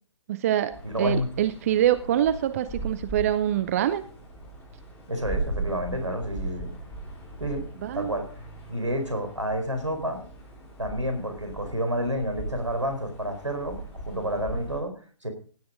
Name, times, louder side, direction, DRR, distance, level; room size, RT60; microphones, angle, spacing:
voice 1, 0.3-4.0 7.8-8.1, right 11 dB, 30° right, 14 dB, 0.7 m, -25 dB
sound 1, 0.7-14.8, right 2 dB, 10° left, 4.6 m, -38 dB
voice 2, 0.8-1.3 5.1-6.7 7.4-7.7 7.9-8.3 8.7-10.2 10.8-15.3, equal, 80° right, 7 dB, 4.7 m, -29 dB
16.5 x 9.7 x 5.2 m, 0.42 s
figure-of-eight pair, 135°, 15 cm